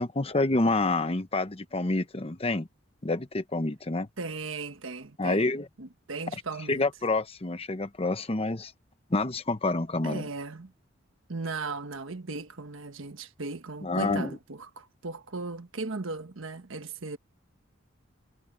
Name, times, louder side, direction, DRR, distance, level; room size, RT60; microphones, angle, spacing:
voice 1, 0.0-2.7 3.0-4.1 5.2-5.6 6.7-8.7 9.1-10.3 13.8-14.4, left 2 dB, 30° left, 0.9 m, -28 dB
voice 2, 4.2-6.8 10.0-10.7 11.3-17.2, right 3 dB, 80° right, 1.3 m, -37 dB
head